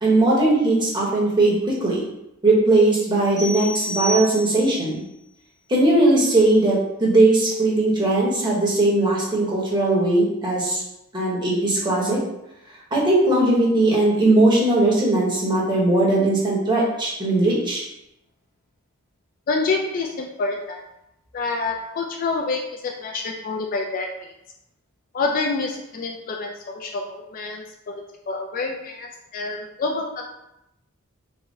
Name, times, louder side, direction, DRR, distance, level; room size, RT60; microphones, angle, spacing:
voice 1, 0.0-2.1 2.4-5.0 5.7-10.8 11.1-12.2 12.9-17.8, right 2 dB, 20° right, -5 dB, 1.0 m, -19 dB
sound 1, 3.4-4.9, equal, 15° left, 0.7 m, -30 dB
voice 2, 19.5-20.8 21.3-24.3 25.1-30.2, left 3 dB, 40° left, 2 dB, 0.3 m, -27 dB
3.5 x 2.1 x 3.9 m, 0.86 s
head